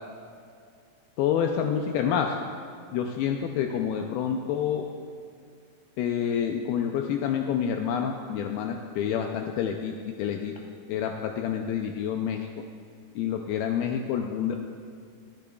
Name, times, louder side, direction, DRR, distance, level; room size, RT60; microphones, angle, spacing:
voice 1, 1.2-2.3 2.9-4.9 6.0-10.5 10.9-12.5 13.2-14.6, left 8 dB, 80° left, 3 dB, 2.4 m, -28 dB
25.0 x 10.0 x 2.3 m, 2.2 s
omnidirectional pair, 4.5 m